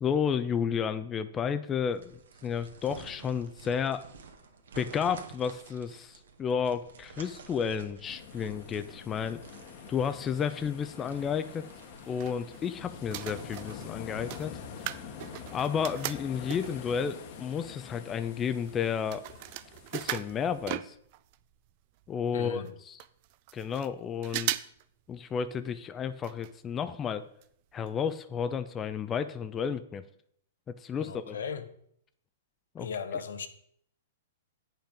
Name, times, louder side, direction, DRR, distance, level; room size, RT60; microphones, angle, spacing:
voice 1, 0.0-4.0 4.8-9.4 9.9-11.7 12.1-14.6 14.8-15.1 15.5-19.2 19.9-20.9 22.1-23.0 23.5-24.6 25.1-27.3 27.7-30.0 30.7-31.4 32.7-32.9, left 7 dB, 20° left, 11 dB, 0.5 m, -32 dB
sound 1, 1.9-13.9, right 5 dB, 80° right, 1.6 m, -51 dB
sound 2, 8.0-20.8, left 7 dB, 50° left, 1.2 m, -46 dB
sound 3, 11.8-12.7 13.0-16.9 17.5-17.6 17.8-21.4 21.7-21.8 22.0-22.1 22.6-22.7 23.0-23.9 24.2-24.8 25.1-25.2 26.2-26.5 26.8-26.9 27.4-27.5 27.9-28.0, right 16 dB, 45° right, 0.5 m, -38 dB
voice 2, 22.3-22.7 30.9-31.6 32.8-33.5, left 6 dB, 80° left, 10 dB, 1.0 m, -37 dB
8.7 x 5.5 x 5.2 m, 0.67 s
hypercardioid pair, 130°, 0 cm